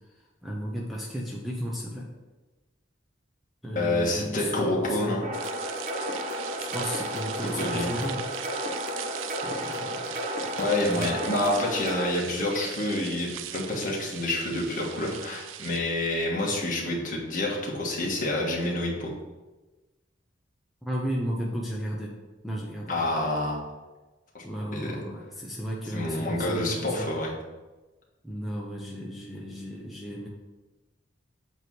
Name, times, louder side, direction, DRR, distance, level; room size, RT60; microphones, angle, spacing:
voice 1, 0.1-2.1 3.6-5.3 6.6-8.2 9.4-10.0 10.9-11.1 20.8-22.1 22.4-23.0 24.4-27.1 28.2-30.3, equal, ahead, -3 dB, 0.7 m, -34 dB
voice 2, 3.7-5.2 7.6-7.9 10.6-19.1 22.9-23.6 24.3-24.4 24.7-25.0 25.9-27.3, left 1 dB, 40° left, -3 dB, 1.5 m, -28 dB
sound 1, 5.2-12.1, equal, 40° right, 0.9 m, -33 dB
sound 2, 5.3-15.8, right 11 dB, 80° right, 0.4 m, -40 dB
8.0 x 3.1 x 6.0 m, 1.2 s
head